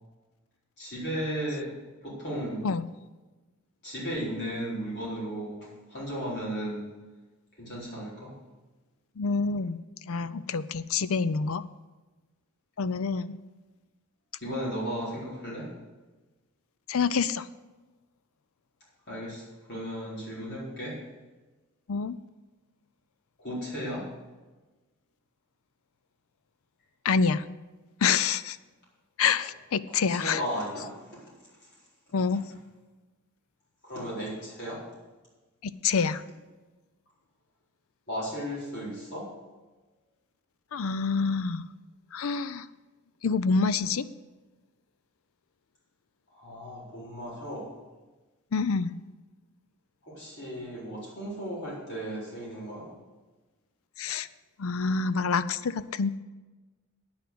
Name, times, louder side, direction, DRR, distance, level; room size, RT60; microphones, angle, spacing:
voice 1, 0.8-1.7 2.0-2.6 3.8-6.9 7.6-8.3 14.4-15.7 19.1-21.0 23.4-24.0 29.9-31.3 32.3-32.4 33.8-34.8 38.1-39.3 46.3-47.7 50.0-52.9, equal, 50° left, -6 dB, 4.2 m, -35 dB
voice 2, 9.2-9.8 10.1-11.7 12.8-13.4 16.9-17.4 21.9-22.2 27.0-27.4 28.0-28.6 29.2-30.4 32.1-32.4 35.6-36.2 40.7-41.7 42.1-42.7 43.2-44.1 48.5-48.9 54.0-54.3 54.6-56.1, left 5 dB, 65° left, 15 dB, 0.5 m, -27 dB
9.6 x 6.9 x 7.9 m, 1.2 s
head